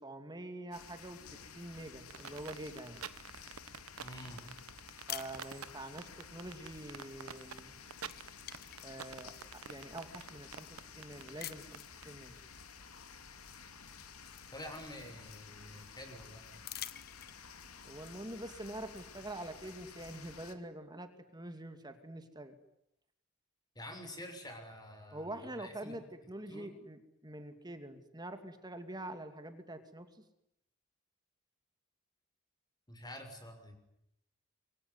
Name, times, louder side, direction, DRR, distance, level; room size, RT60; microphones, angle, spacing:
voice 1, 0.0-3.0 5.1-7.7 8.8-12.3 17.8-22.5 25.1-30.2, right 1 dB, 20° right, 8 dB, 2.5 m, -46 dB
sound 1, 0.7-20.5, left 6 dB, 90° left, 2.6 m, -53 dB
sound 2, 2.1-12.1, right 7 dB, 80° right, 1.3 m, -47 dB
voice 2, 4.0-4.4 14.5-16.6 23.7-25.9 26.5-26.7 32.9-33.8, left 1 dB, 20° left, 6 dB, 6.4 m, -48 dB
sound 3, 5.1-6.1 7.5-7.7 8.0-9.6 10.2-10.3 11.4-12.0 13.4-13.5 13.9-15.4 16.5-17.6, left 12 dB, 45° left, 1.2 m, -47 dB
26.0 x 23.5 x 9.6 m, 0.78 s
head